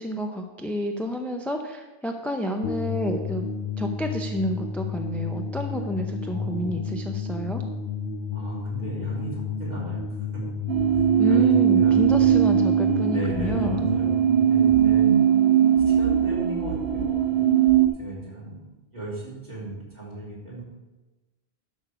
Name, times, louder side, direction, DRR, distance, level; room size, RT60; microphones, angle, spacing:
voice 1, 0.0-3.4 3.8-7.6 11.2-13.8, left 1 dB, ahead, 4 dB, 0.5 m, -29 dB
sound 1, 2.6-15.7, left 5 dB, 85° left, 1.6 m, -32 dB
voice 2, 6.2-6.8 8.3-10.3 10.9-12.4 13.0-15.1 15.9-17.5 17.9-18.6 18.9-20.6, right 1 dB, 40° right, -7 dB, 3.9 m, -37 dB
sound 2, 10.7-17.9, right 9 dB, 75° right, 1.0 m, -20 dB
11.5 x 6.3 x 5.0 m, 1.1 s
omnidirectional pair, 1.1 m